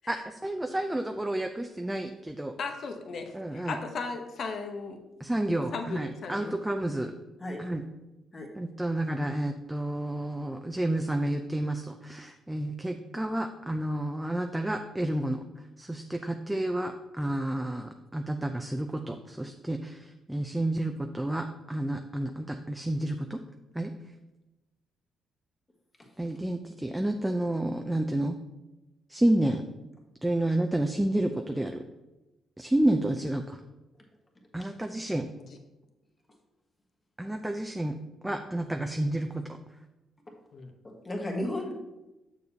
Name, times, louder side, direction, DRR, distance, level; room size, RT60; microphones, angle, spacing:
voice 1, 0.1-2.5 3.3-3.8 5.2-7.1 7.6-7.8 8.6-15.4 15.8-23.4 23.7-23.9 26.2-28.4 29.1-29.6 30.2-31.8 32.6-33.6 34.5-35.3 37.2-38.0 38.2-39.4, right 1 dB, 10° right, 5 dB, 0.4 m, -30 dB
voice 2, 2.6-5.0 5.7-6.5 40.5-40.7, left 4 dB, 60° left, 5 dB, 0.9 m, -36 dB
voice 3, 40.8-41.7, left 1 dB, 20° left, 1 dB, 1.5 m, -34 dB
6.8 x 6.6 x 2.8 m, 1.0 s
cardioid pair, 90°, 0 cm